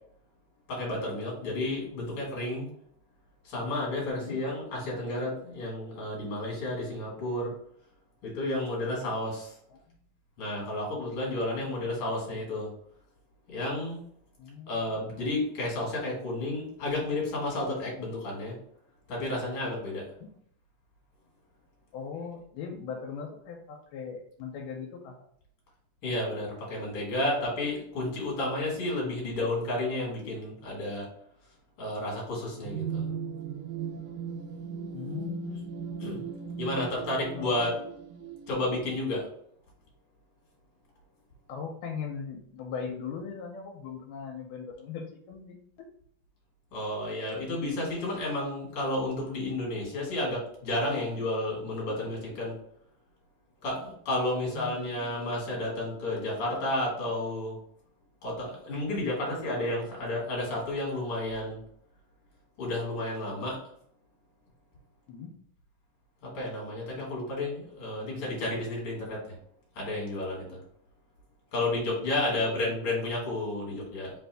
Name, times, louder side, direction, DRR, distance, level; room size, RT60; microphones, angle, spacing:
voice 1, 0.7-2.7 3.4-7.5 8.2-9.5 10.4-12.7 13.5-14.0 14.7-18.6 19.1-20.1 26.0-31.1 31.8-33.1 36.0-36.2 36.6-37.8 38.5-39.3 46.7-52.5 53.6-57.6 58.2-61.6 62.6-63.6 66.2-69.2 69.8-70.6 71.5-74.1, left 1 dB, 50° left, -3 dB, 2.2 m, -31 dB
voice 2, 11.6-11.9 14.4-14.8 21.9-25.1 34.9-35.7 36.7-37.1 37.4-37.7 41.5-45.6 54.4-54.9 65.1-65.3 72.5-72.8, left 6 dB, 85° left, 3 dB, 2.1 m, -39 dB
sound 1, 32.7-39.0, right 7 dB, 85° right, 2.1 m, -38 dB
4.8 x 2.5 x 3.3 m, 0.67 s
omnidirectional pair, 3.6 m